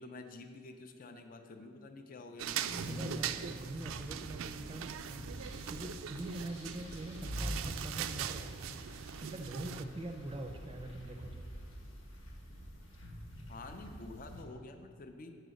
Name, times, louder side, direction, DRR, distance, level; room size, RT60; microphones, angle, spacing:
voice 1, 0.0-2.8 13.5-15.4, left 2 dB, 45° left, 6 dB, 0.5 m, -49 dB
sound 1, 2.4-9.8, right 9 dB, 85° right, 0.3 m, -41 dB
voice 2, 2.7-11.5, right 1 dB, 25° right, 4 dB, 0.5 m, -44 dB
sound 2, 2.8-14.4, equal, 90° left, 1.4 m, -46 dB
8.0 x 4.7 x 6.3 m, 2.3 s
head